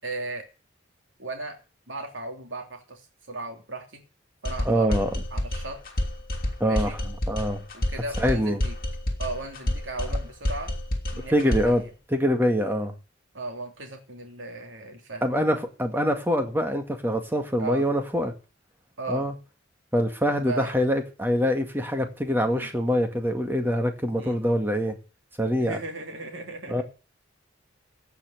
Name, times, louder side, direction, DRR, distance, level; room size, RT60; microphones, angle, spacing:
voice 1, 0.0-0.5 1.2-1.6 1.9-4.0 4.4-5.0 5.3-5.8 6.6-7.0 7.7-8.7 9.2-10.7 11.1-11.9 13.3-15.4 17.6-17.9 19.0-19.3 20.3-20.7 22.5-22.7 24.2-24.4 25.6-26.8, right 2 dB, 80° right, 3 dB, 3.0 m, -36 dB
sound 1, 4.5-11.8, left 1 dB, 50° left, 2.9 m, -29 dB
voice 2, 4.7-5.1 6.6-7.6 8.2-8.6 11.3-11.8 12.1-12.9 15.2-18.3 19.1-19.3 19.9-25.0 25.4-25.8 26.7-26.8, equal, 10° right, 5 dB, 2.0 m, -24 dB
16.5 x 5.8 x 8.4 m, 0.34 s
head